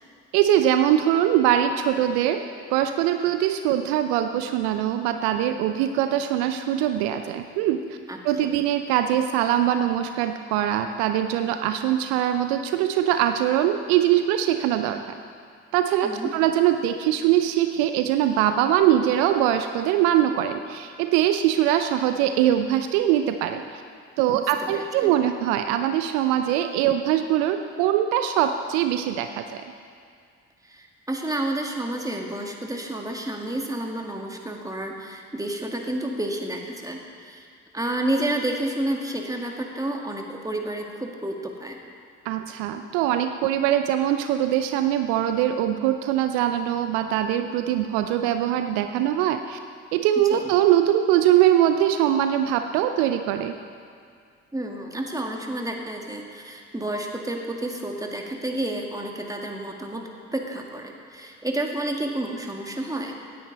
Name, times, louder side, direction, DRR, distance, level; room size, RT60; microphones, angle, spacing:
voice 1, 0.3-2.4 2.7-8.0 8.2-15.0 15.7-23.8 24.2-29.6 42.3-49.6 49.9-53.5, right 11 dB, 75° right, 8 dB, 0.6 m, -22 dB
voice 2, 8.1-8.5 16.0-16.3 24.3-25.1 30.6-37.5 37.7-41.8 50.3-50.5 54.5-63.1, right 1 dB, 10° right, 1 dB, 2.1 m, -30 dB
17.0 x 9.8 x 4.2 m, 2.2 s
hypercardioid pair, 45°, 36 cm